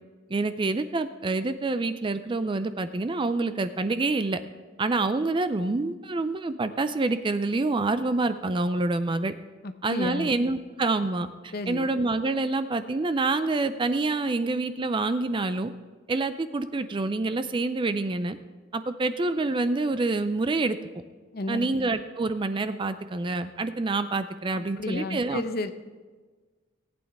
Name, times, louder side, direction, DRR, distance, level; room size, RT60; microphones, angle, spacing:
voice 1, 0.3-4.4 4.8-9.3 9.8-15.7 16.1-18.4 18.7-20.8 21.5-25.4, right 3 dB, 25° right, 11 dB, 0.4 m, -27 dB
voice 2, 9.6-10.4 11.5-11.9 21.3-21.7 24.5-25.7, left 2 dB, 50° left, 9 dB, 0.7 m, -32 dB
18.0 x 8.7 x 3.5 m, 1.4 s
head